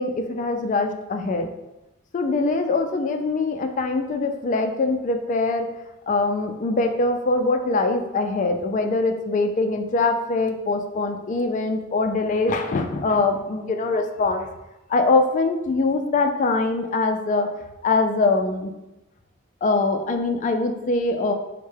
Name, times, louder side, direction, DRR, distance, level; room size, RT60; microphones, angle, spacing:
voice 1, 0.0-1.5 2.1-5.7 6.1-14.5 14.9-17.5 17.8-18.7 19.6-21.3, left 3 dB, 40° left, 6 dB, 0.3 m, -23 dB
4.4 x 2.1 x 3.3 m, 0.95 s
head